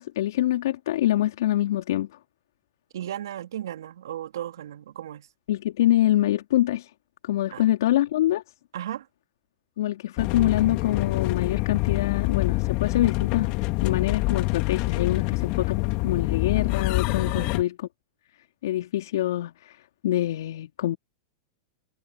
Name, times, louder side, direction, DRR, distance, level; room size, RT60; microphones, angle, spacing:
voice 1, 0.0-2.1 5.5-6.9 7.2-8.4 9.8-13.5 13.8-17.7 18.6-19.8 20.0-21.0, left 13 dB, 70° left, 3.5 m, -25 dB
voice 2, 2.9-5.3 7.5-7.6 8.7-9.1 17.4-17.5, right 11 dB, 75° right, 3.3 m, -35 dB
sound 1, 10.2-17.6, left 24 dB, 50° left, 2.5 m, -26 dB
hypercardioid pair, 100°, 2 cm